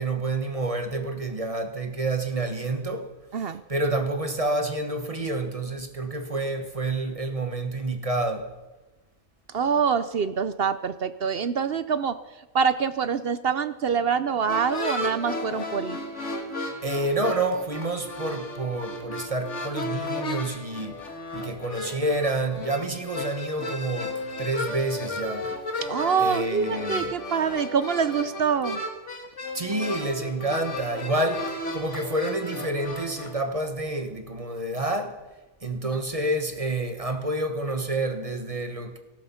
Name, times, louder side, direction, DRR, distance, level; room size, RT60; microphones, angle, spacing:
voice 1, 0.0-3.1 3.7-8.5 16.8-21.0 21.3-25.5 26.2-27.2 29.5-35.2 35.6-39.0, right 2 dB, 25° right, 1.3 m, -28 dB
voice 2, 9.5-12.1 12.5-16.0 25.9-28.8, right 6 dB, 55° right, 0.7 m, -25 dB
sound 1, 14.5-33.4, left 1 dB, 55° left, 2.1 m, -34 dB
18.5 x 14.0 x 5.7 m
omnidirectional pair, 1.5 m